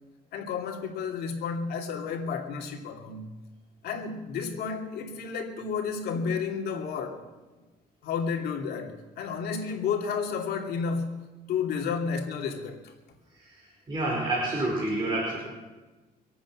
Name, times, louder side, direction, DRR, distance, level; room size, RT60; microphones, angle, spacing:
voice 1, 0.3-3.4 3.8-7.2 8.0-12.9, left 5 dB, 70° left, 1 dB, 2.7 m, -31 dB
voice 2, 13.9-15.4, right 2 dB, 25° right, -4 dB, 5.1 m, -28 dB
25.0 x 8.8 x 6.2 m, 1.2 s
cardioid pair, 110°, 17 cm